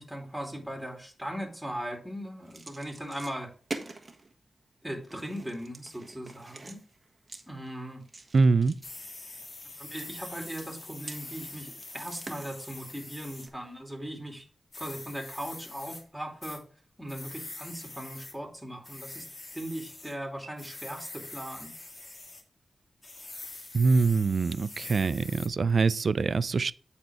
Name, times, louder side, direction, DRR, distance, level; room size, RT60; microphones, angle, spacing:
voice 1, 0.0-3.5 4.8-6.8 7.5-8.0 9.8-14.4 14.8-16.6 17.0-19.2 19.5-21.7, equal, 5° right, 2.7 m, -39 dB
sound 1, 2.4-4.3 5.1-13.5, right 3 dB, 40° right, 1.3 m, -46 dB
voice 2, 8.3-8.8 23.7-26.7, right 4 dB, 65° right, 0.3 m, -24 dB
sound 2, 8.8-13.5 14.7-16.0 16.4-16.6 17.1-18.3 18.8-20.1 20.6-22.4 23.0-25.5, left 2 dB, 50° left, 1.8 m, -44 dB
8.8 x 4.2 x 4.7 m
cardioid pair, 60°, 0 cm